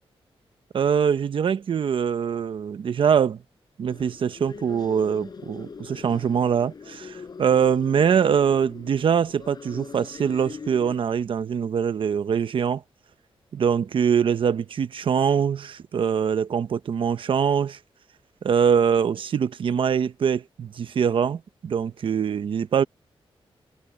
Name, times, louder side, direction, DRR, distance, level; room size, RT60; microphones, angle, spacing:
voice 1, 0.7-3.4 3.8-12.8 13.5-17.8 18.4-22.8, right 7 dB, 60° right, 0.9 m, -23 dB
sound 1, 3.9-11.0, left 5 dB, 45° left, 6.8 m, -42 dB
wide cardioid pair, 160°, 10 cm